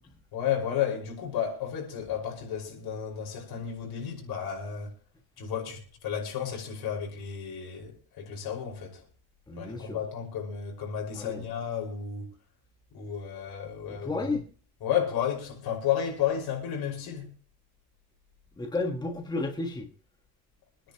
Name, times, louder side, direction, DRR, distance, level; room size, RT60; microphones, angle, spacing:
voice 1, 0.3-4.9 5.4-9.0 9.6-12.3 12.9-14.4 14.8-17.4, left 8 dB, 65° left, 5.3 m, -32 dB
voice 2, 9.5-10.0 11.2-11.4 13.9-14.4 18.6-19.9, left 2 dB, 10° left, 1.5 m, -32 dB
25.0 x 10.0 x 3.0 m
cardioid pair, 140°, 39 cm